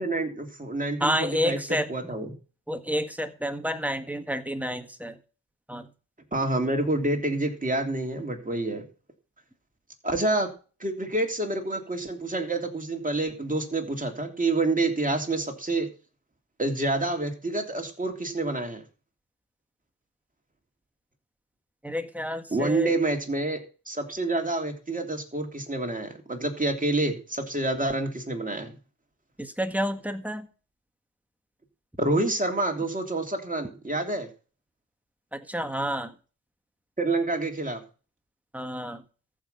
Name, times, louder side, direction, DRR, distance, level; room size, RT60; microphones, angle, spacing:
voice 1, 0.0-1.6 1.9-2.3 6.3-8.8 10.0-10.5 10.8-15.9 16.6-18.8 22.5-23.6 23.9-28.7 32.0-34.3 37.0-37.8, right 2 dB, 20° right, 3.3 m, -28 dB
voice 2, 1.0-1.9 2.7-5.2 5.7-5.9 21.8-22.9 29.4-30.5 35.3-36.1 38.5-39.0, equal, 5° right, 1.7 m, -29 dB
14.0 x 6.0 x 7.0 m
cardioid pair, 80°, 38 cm